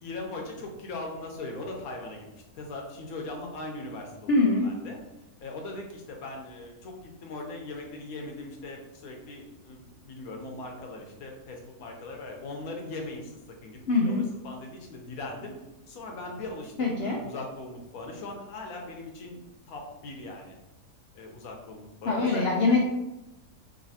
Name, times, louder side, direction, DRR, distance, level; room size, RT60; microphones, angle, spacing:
voice 1, 0.0-2.2 2.5-4.3 4.6-5.0 5.4-13.3 13.6-15.5 15.9-19.4 19.7-20.6 21.1-22.5, left 2 dB, 65° left, 1 dB, 1.2 m, -39 dB
voice 2, 4.3-4.7 13.9-14.2 16.8-17.2 22.1-22.8, left 3 dB, 90° left, -1 dB, 0.5 m, -23 dB
5.1 x 2.8 x 2.8 m, 0.97 s
omnidirectional pair, 1.7 m